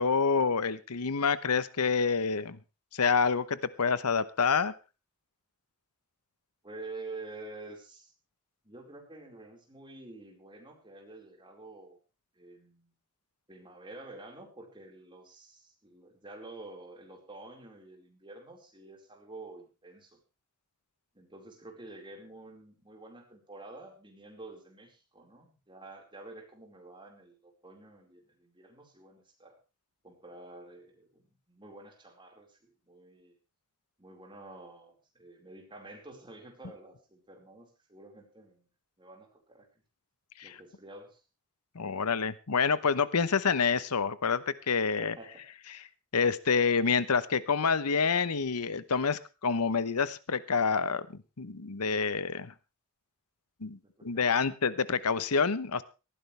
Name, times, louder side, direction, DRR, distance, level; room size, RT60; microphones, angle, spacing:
voice 1, 0.0-2.6 2.9-4.7 40.4-40.6 41.7-45.1 46.1-51.1 51.4-52.5 53.6-55.8, left 5 dB, 80° left, 16 dB, 0.9 m, -27 dB
voice 2, 6.6-8.1 8.6-12.0 12.3-12.9 13.5-20.2 21.1-29.6 30.0-33.4 34.0-38.7 39.0-39.7 40.4-41.2 45.0-45.4 54.1-54.5, right 2 dB, 20° right, 1 dB, 4.6 m, -49 dB
18.5 x 15.0 x 3.3 m, 0.31 s
head